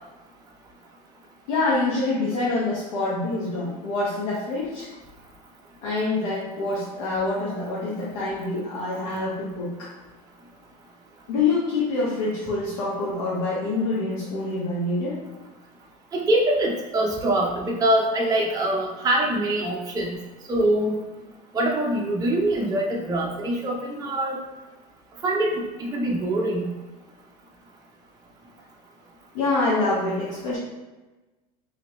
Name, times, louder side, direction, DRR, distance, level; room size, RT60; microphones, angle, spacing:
voice 1, 1.5-4.9 5.8-9.9 11.3-15.2 29.3-30.6, left 3 dB, 85° left, -7 dB, 1.0 m, -26 dB
voice 2, 16.1-20.2 20.5-20.9 21.5-24.4 25.2-26.6, right 1 dB, 20° right, -2 dB, 0.6 m, -24 dB
3.0 x 2.9 x 3.0 m, 1.1 s
hypercardioid pair, 95°, 20 cm